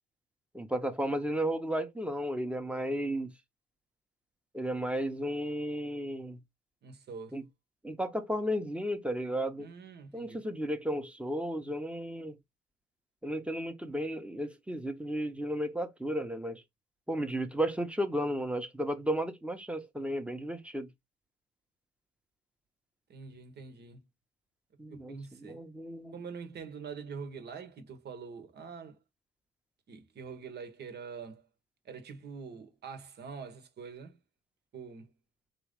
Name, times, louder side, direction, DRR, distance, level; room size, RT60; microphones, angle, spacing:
voice 1, 0.5-3.3 4.5-6.4 7.3-7.4 7.8-9.7 10.1-12.4 13.2-16.6 17.1-20.9 24.8-26.2, equal, 5° right, 0.8 m, -34 dB
voice 2, 6.8-7.4 9.6-10.4 23.1-24.0 24.9-25.6 26.1-29.0 29.9-31.5 31.8-34.2 34.7-35.1, right 5 dB, 55° right, 1.0 m, -45 dB
3.9 x 3.0 x 3.6 m
cardioid pair, 90°, 20 cm